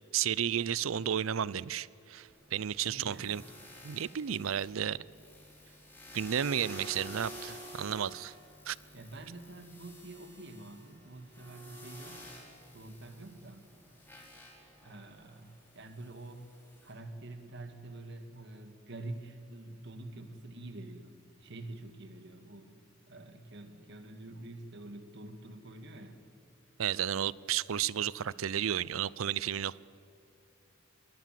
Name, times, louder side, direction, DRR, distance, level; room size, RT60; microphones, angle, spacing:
voice 1, 0.1-3.4 3.8-5.0 6.1-8.3 8.7-8.8 26.8-29.8, right 9 dB, 85° right, 0.5 m, -32 dB
sound 1, 2.3-16.9, equal, 10° left, 5.0 m, -51 dB
voice 2, 2.8-3.3 8.9-12.3 12.7-13.7 14.8-16.4 16.8-22.8 23.1-26.2, right 2 dB, 60° right, 2.0 m, -47 dB
22.0 x 19.5 x 7.6 m
head